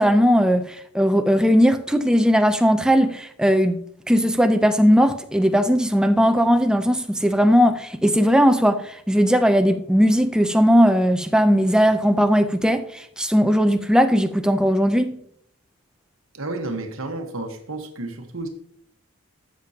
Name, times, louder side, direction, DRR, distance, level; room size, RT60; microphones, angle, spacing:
voice 1, 0.0-3.8 4.1-15.2, equal, 5° right, 0.4 m, -18 dB
voice 2, 16.3-18.5, right 2 dB, 65° right, 1.2 m, -31 dB
12.5 x 7.4 x 2.8 m
head